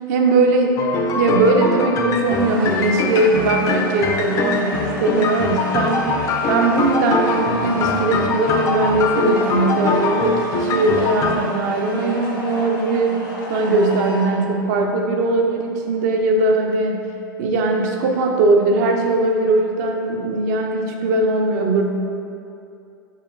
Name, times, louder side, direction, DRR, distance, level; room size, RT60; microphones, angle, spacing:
voice 1, 0.1-0.8 1.2-6.0 6.5-13.2 13.5-17.0 17.4-21.8, right 2 dB, 50° right, 2 dB, 0.5 m, -19 dB
sound 1, 0.8-11.4, left 3 dB, 30° left, 0.3 m, -23 dB
sound 2, 2.2-14.2, left 1 dB, 85° left, 1.0 m, -32 dB
5.6 x 3.0 x 2.5 m, 2.5 s
figure-of-eight pair, 85°, 11 cm